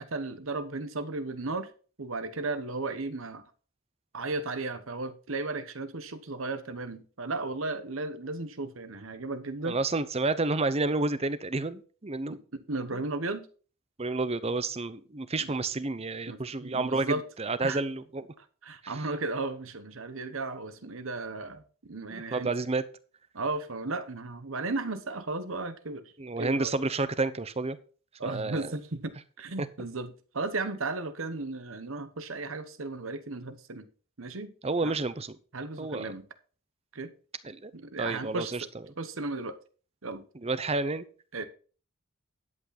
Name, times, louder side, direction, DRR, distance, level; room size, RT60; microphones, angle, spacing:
voice 1, 0.0-1.7 2.0-3.4 4.1-9.8 12.3-13.5 15.4-15.5 16.3-17.2 17.6-17.8 18.4-22.5 23.3-26.7 28.2-33.9 34.2-34.5 34.8-34.9 35.5-36.3 36.9-37.1 37.7-38.7 39.0-39.6 40.0-40.2 41.3-41.4, right 3 dB, 70° right, 1.1 m, -35 dB
voice 2, 9.6-12.4 14.0-18.3 18.8-18.9 22.1-22.8 26.2-27.8 28.2-28.7 29.6-29.7 34.6-35.3 35.8-36.1 37.4-37.7 38.0-38.7 40.4-41.0, right 3 dB, 30° right, 0.7 m, -30 dB
11.0 x 8.4 x 4.2 m
head